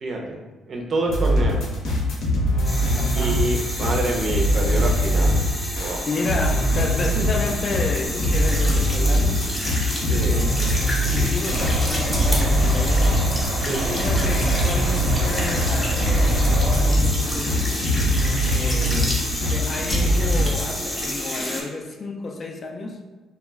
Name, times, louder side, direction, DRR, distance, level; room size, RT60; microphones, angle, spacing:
voice 1, 0.0-0.4 0.7-1.6 3.1-5.4 5.8-6.1 10.1-10.4 13.6-13.9, right 2 dB, 50° right, 0 dB, 0.5 m, -27 dB
sound 1, 1.1-13.3 13.6-20.5, equal, 80° left, 0.7 m, -22 dB
sound 2, 2.6-21.6, left 1 dB, 20° left, 0.8 m, -30 dB
voice 2, 2.9-3.4 6.1-9.5 10.2-13.3 13.8-17.8 18.5-23.0, left 3 dB, 45° left, 3 dB, 0.3 m, -31 dB
sound 3, 11.4-16.8, right 1 dB, 85° right, 0.8 m, -27 dB
2.1 x 2.1 x 3.3 m, 1.2 s
cardioid pair, 80°, 0 cm